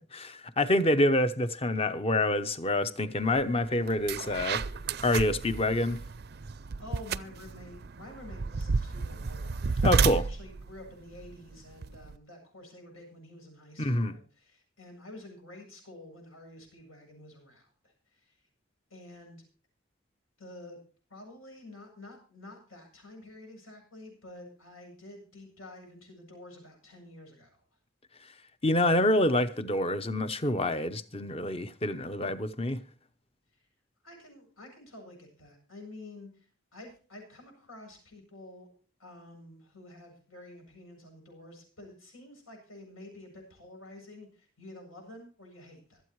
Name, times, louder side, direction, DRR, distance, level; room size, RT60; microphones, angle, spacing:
voice 1, 0.1-4.6 5.0-6.0 9.8-10.3 13.8-14.1 28.6-32.8, left 1 dB, 30° left, 0.8 m, -27 dB
sound 1, 3.4-3.5 3.9-12.2, right 5 dB, 50° right, 0.5 m, -32 dB
voice 2, 6.8-18.4 18.9-19.4 20.4-20.8 21.1-27.6 33.5-33.6 34.0-38.7 39.0-46.0, left 1 dB, 85° left, 7.9 m, -49 dB
25.0 x 8.7 x 3.2 m
head